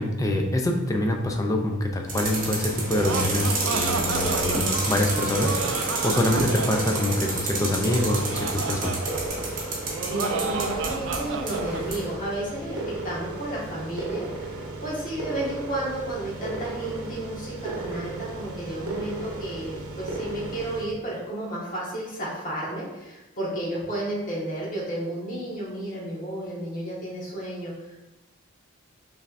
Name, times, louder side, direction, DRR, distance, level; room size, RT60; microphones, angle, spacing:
voice 1, 0.0-9.0, left 1 dB, 15° left, 2 dB, 0.4 m, -25 dB
sound 1, 2.1-12.1, right 3 dB, 40° right, 1.1 m, -30 dB
sound 2, 2.2-20.9, right 2 dB, 75° right, 0.8 m, -35 dB
Laughter, 2.7-11.8, right 5 dB, 60° right, 0.3 m, -32 dB
voice 2, 10.1-28.0, right 1 dB, 40° left, -6 dB, 1.4 m, -32 dB
5.6 x 3.4 x 2.5 m, 1.0 s
head